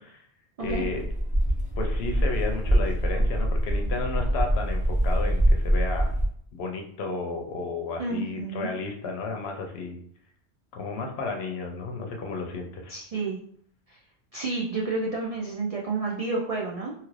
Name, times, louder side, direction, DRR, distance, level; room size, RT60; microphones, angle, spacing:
voice 1, 0.6-1.1 1.8-6.1 6.5-10.0 10.7-12.9, left 3 dB, 70° left, 3 dB, 0.8 m, -33 dB
sound 1, 0.6-6.3, equal, 10° right, 0.6 m, -24 dB
voice 2, 8.0-8.7 12.9-13.4 13.9-14.0 14.3-16.9, right 3 dB, 70° right, -3 dB, 0.3 m, -30 dB
3.0 x 2.4 x 3.1 m, 0.62 s
omnidirectional pair, 1.2 m